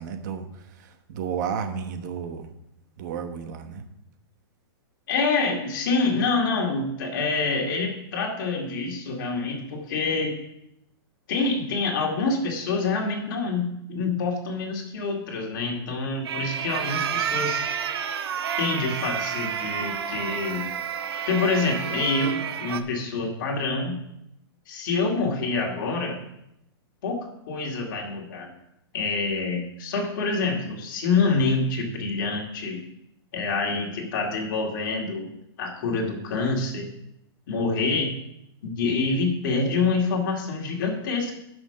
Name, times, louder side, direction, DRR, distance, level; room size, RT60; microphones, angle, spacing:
voice 1, 0.0-2.5 3.0-3.9, right 7 dB, 45° right, 7 dB, 1.1 m, -32 dB
voice 2, 5.1-10.4 11.3-17.6 18.6-20.7 21.2-24.0 24.7-26.2 27.0-28.5 28.9-32.8 33.3-35.3 35.6-36.9 37.5-38.1 38.6-41.4, left 3 dB, 50° left, 1 dB, 2.4 m, -26 dB
sound 1, 16.2-22.8, right 8 dB, 75° right, 0.9 m, -30 dB
10.5 x 6.3 x 5.7 m, 0.82 s
hypercardioid pair, 160°, 13 cm